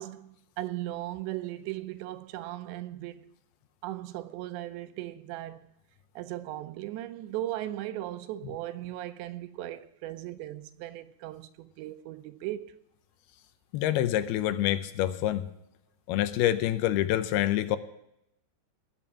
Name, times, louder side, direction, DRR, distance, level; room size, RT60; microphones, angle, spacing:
voice 1, 0.0-3.3 3.8-5.7 6.2-12.8, right 14 dB, 85° right, 3.0 m, -37 dB
voice 2, 13.7-15.5 16.1-17.8, left 13 dB, 80° left, 2.5 m, -26 dB
19.5 x 7.1 x 7.4 m
omnidirectional pair, 5.1 m